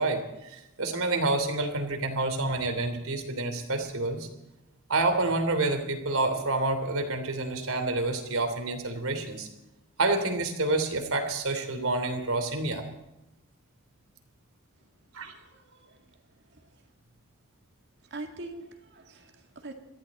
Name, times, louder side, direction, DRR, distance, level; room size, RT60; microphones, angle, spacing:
voice 1, 0.0-4.3 4.9-9.5 10.0-12.8 15.1-15.3, right 2 dB, 80° right, 6 dB, 3.1 m, -28 dB
voice 2, 15.3-16.0 16.5-16.6 18.1-19.7, right 2 dB, 55° right, 4 dB, 2.1 m, -43 dB
22.5 x 14.5 x 4.2 m, 0.98 s
head